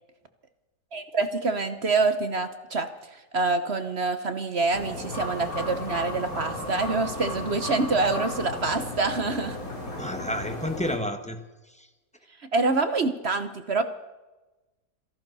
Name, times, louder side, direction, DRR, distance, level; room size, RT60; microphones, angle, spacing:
voice 1, 0.9-9.6 12.5-13.8, right 3 dB, 45° right, 10 dB, 1.1 m, -26 dB
sound 1, 4.7-11.0, left 2 dB, 50° left, 4.0 m, -35 dB
voice 2, 9.8-11.9, left 1 dB, 5° left, 6 dB, 1.4 m, -31 dB
27.5 x 11.5 x 4.2 m, 1.1 s
omnidirectional pair, 1.9 m